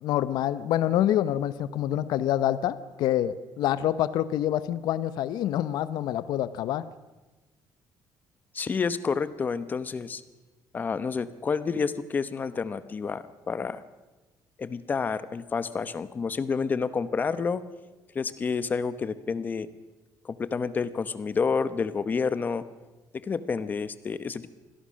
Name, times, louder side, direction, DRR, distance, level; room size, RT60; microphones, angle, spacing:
voice 1, 0.0-6.8, left 12 dB, 70° left, 15 dB, 0.8 m, -26 dB
voice 2, 8.5-10.2 10.7-13.8 14.6-17.6 18.1-19.7 20.2-22.6 23.2-24.5, left 5 dB, 25° left, 14 dB, 0.9 m, -29 dB
25.5 x 17.0 x 6.4 m, 1.2 s
cardioid pair, 165°, 7 cm